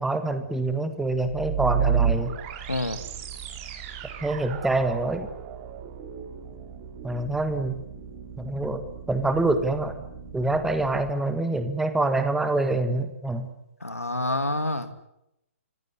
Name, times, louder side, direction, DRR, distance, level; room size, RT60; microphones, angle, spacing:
voice 1, 0.0-2.3 4.2-5.3 7.0-7.8 8.4-8.8 9.1-10.0 10.3-13.5, right 2 dB, 5° right, 9 dB, 1.7 m, -26 dB
sound 1, 1.1-11.1, right 7 dB, 30° right, 3.3 m, -32 dB
voice 2, 2.7-3.0 13.8-14.9, left 2 dB, 80° left, 10 dB, 2.6 m, -27 dB
26.0 x 17.5 x 9.7 m, 0.84 s
figure-of-eight pair, 130°, 8 cm